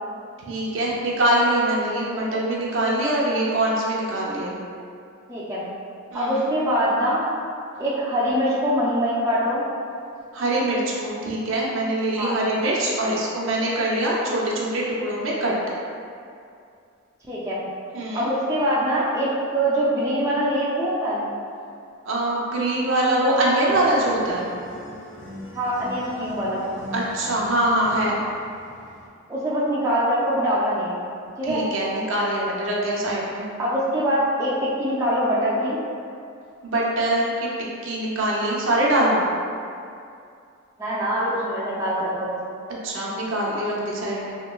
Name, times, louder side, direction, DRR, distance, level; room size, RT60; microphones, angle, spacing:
voice 1, 0.4-4.6 6.1-6.5 10.3-15.5 17.9-18.3 22.1-24.5 26.9-28.2 31.4-33.5 36.6-37.5 37.8-39.2 42.8-44.3, right 1 dB, 65° right, -4 dB, 0.6 m, -23 dB
voice 2, 5.3-5.7 6.1-7.2 7.8-9.6 12.2-12.4 17.3-17.6 18.1-21.3 25.5-26.6 29.3-31.0 31.4-31.7 33.6-35.8 40.8-42.4, equal, 15° right, -8 dB, 0.4 m, -23 dB
sound 1, 23.7-29.1, left 1 dB, 60° left, 0.5 m, -40 dB
3.1 x 2.9 x 2.2 m, 2.4 s
head